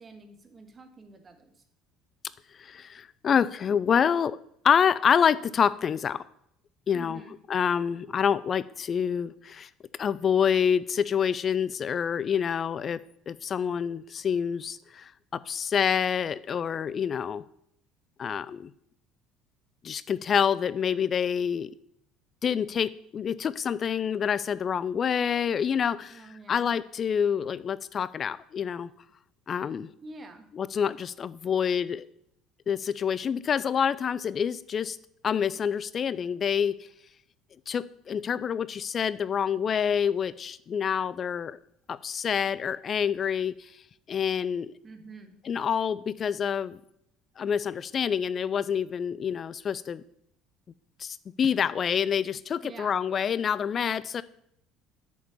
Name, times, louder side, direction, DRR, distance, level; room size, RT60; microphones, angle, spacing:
voice 1, 0.0-1.5 6.9-7.3 26.1-26.7 30.0-30.4 44.8-45.4 52.6-52.9, right 3 dB, 30° right, 6 dB, 1.9 m, -47 dB
voice 2, 2.6-4.4 4.6-6.2 6.9-7.2 7.5-9.7 10.0-13.0 13.3-17.4 18.2-18.7 19.8-21.7 22.4-28.9 29.5-29.9 30.5-32.1 32.7-35.0 35.2-36.8 37.7-41.6 41.9-43.7 44.1-44.7 45.4-46.8 47.4-50.0 51.0-54.2, left 7 dB, 40° left, 18 dB, 0.5 m, -27 dB
8.3 x 6.9 x 7.1 m, 0.72 s
figure-of-eight pair, 60°, 0 cm